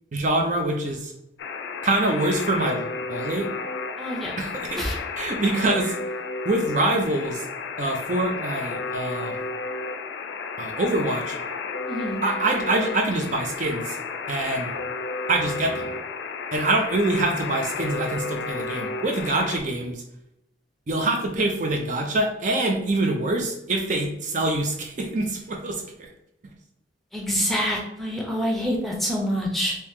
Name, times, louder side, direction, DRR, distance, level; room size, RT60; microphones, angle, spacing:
voice 1, 0.1-1.1 1.8-3.5 4.4-4.9 5.2-6.0 6.4-7.4 7.8-9.4 10.6-11.4 12.2-14.0 14.3-14.7 15.3-15.9 16.5-20.0 20.9-26.1, right 2 dB, 45° right, 2 dB, 0.5 m, -25 dB
Alarm, 1.4-19.6, left 4 dB, 75° left, 0.4 m, -32 dB
voice 2, 4.0-4.4 4.7-5.0 11.9-12.2 27.1-29.7, equal, ahead, -2 dB, 0.6 m, -26 dB
2.9 x 2.7 x 3.5 m, 0.81 s
head